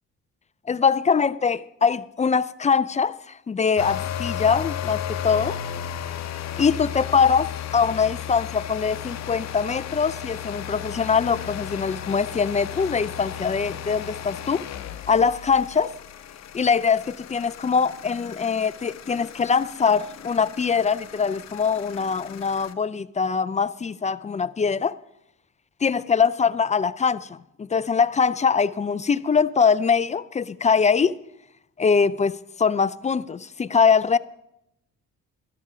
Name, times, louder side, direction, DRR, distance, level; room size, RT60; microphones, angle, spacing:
voice 1, 0.7-5.6 6.6-14.6 15.1-15.9 16.5-25.0 25.8-31.2 31.8-34.2, left 6 dB, 25° left, 0.4 m, -22 dB
sound 1, 3.8-22.7, left 9 dB, 60° left, 0.8 m, -35 dB
12.5 x 12.0 x 4.9 m
cardioid pair, 90°, 30 cm